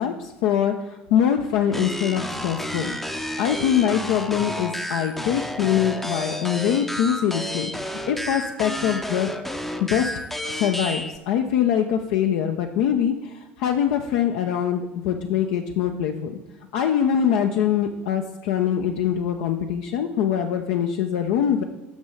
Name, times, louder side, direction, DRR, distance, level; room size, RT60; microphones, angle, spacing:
voice 1, 0.0-2.9 3.4-9.3 9.8-10.1 10.5-16.3 16.7-21.6, left 9 dB, 60° left, 4 dB, 0.5 m, -23 dB
sound 1, 1.7-11.2, left 1 dB, 5° left, 0.6 m, -31 dB
6.2 x 6.2 x 5.3 m, 1.1 s
figure-of-eight pair, 70°, 6 cm